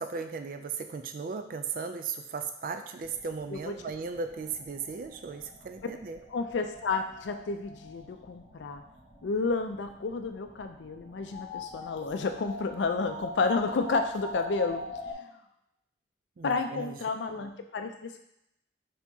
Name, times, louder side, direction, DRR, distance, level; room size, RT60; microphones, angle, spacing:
voice 1, 0.0-6.2 16.4-17.0, right 5 dB, 50° right, 7 dB, 0.3 m, -36 dB
sound 1, 3.0-15.1, left 1 dB, 30° right, 1.2 m, -44 dB
voice 2, 6.3-8.8 9.2-15.3 16.4-18.2, left 4 dB, 75° left, 6 dB, 0.4 m, -31 dB
4.5 x 3.5 x 2.7 m, 0.81 s
head